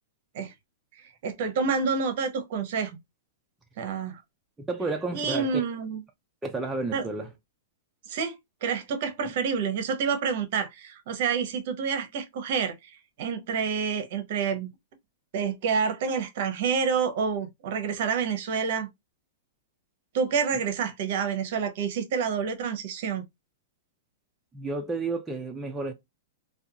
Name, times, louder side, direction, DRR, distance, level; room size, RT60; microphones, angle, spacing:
voice 1, 1.0-3.0 3.8-4.2 5.1-6.0 6.9-7.0 8.1-8.4 8.6-14.7 15.3-18.9 20.1-23.2, right 6 dB, 55° right, 0.7 m, -28 dB
voice 2, 4.6-5.5 6.4-7.3 24.5-25.9, right 3 dB, 5° right, 0.3 m, -31 dB
2.5 x 2.2 x 2.7 m
supercardioid pair, 160°, 0 cm